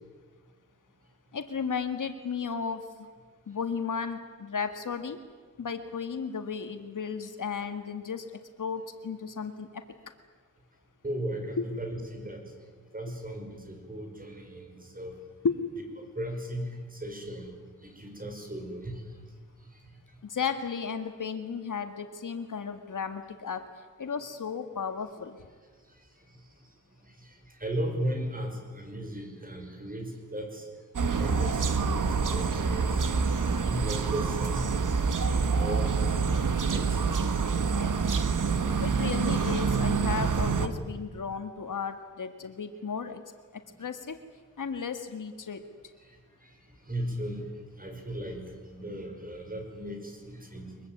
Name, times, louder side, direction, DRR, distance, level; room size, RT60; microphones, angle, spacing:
voice 1, 1.3-2.8 3.5-5.2 5.6-8.3 8.6-9.8 11.6-11.7 15.4-15.6 20.2-23.6 24.0-25.4 38.8-43.2 43.8-44.2 44.6-45.6, left 6 dB, 75° left, 8 dB, 1.8 m, -34 dB
voice 2, 11.0-12.4 12.9-15.2 16.0-17.5 17.8-19.0 27.2-27.3 27.6-30.7 31.1-33.0 33.7-34.8 35.3-35.9 36.7-37.4 46.4-46.5 46.9-47.5 47.8-50.8, right 1 dB, 25° right, 4 dB, 5.6 m, -36 dB
sound 1, 30.9-40.7, right 5 dB, 75° right, 1.6 m, -27 dB
23.5 x 22.5 x 9.5 m, 1.5 s
wide cardioid pair, 105°, 32 cm